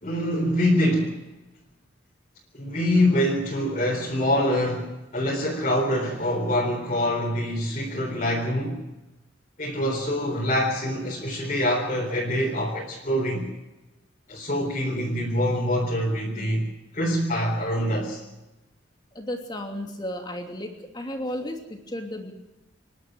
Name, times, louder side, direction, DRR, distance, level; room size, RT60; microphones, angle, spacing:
voice 1, 0.0-1.2 2.5-8.8 9.6-13.5 14.3-18.2, left 1 dB, 40° left, 4.0 m, -25 dB
voice 2, 19.1-22.3, left 1 dB, 20° left, 2.9 m, -33 dB
27.5 x 11.5 x 9.5 m
head